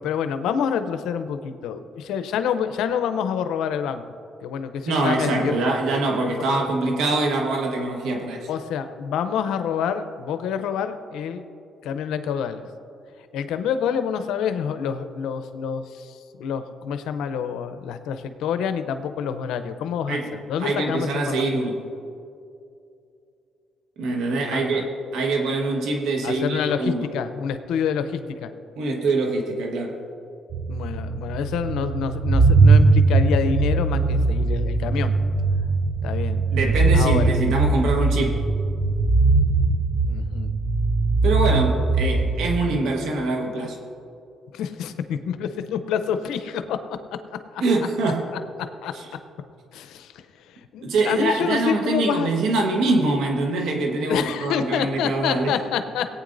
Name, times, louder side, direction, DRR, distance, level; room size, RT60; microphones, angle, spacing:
voice 1, 0.0-4.0 4.4-5.5 8.5-11.4 11.8-12.6 13.3-20.2 20.5-21.4 24.5-24.8 26.2-28.5 30.7-35.1 36.0-36.4 36.9-37.3 39.9-40.5 44.5-46.8 47.5-47.6 48.8-48.9 49.7-50.2 50.7-52.3 54.1-56.1, left 7 dB, 90° left, 10 dB, 0.6 m, -27 dB
voice 2, 4.9-8.5 20.1-20.3 20.6-21.9 24.0-27.1 28.8-30.0 36.5-38.4 41.2-43.8 47.6-48.3 48.9-49.1 50.8-55.6, right 2 dB, 85° right, 1 dB, 1.3 m, -24 dB
sound 1, 30.5-42.6, right 3 dB, 40° right, 0.6 m, -20 dB
18.0 x 9.0 x 2.6 m, 2.5 s
cardioid pair, 90°, 0 cm